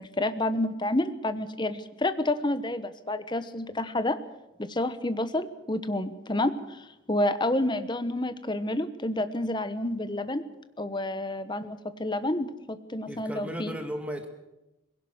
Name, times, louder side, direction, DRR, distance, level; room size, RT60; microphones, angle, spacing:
voice 1, 0.0-4.2 4.6-10.4 10.8-13.7, left 1 dB, 20° left, 11 dB, 1.1 m, -29 dB
voice 2, 13.1-14.3, equal, 5° right, 5 dB, 2.0 m, -35 dB
20.5 x 17.0 x 7.9 m, 0.98 s
head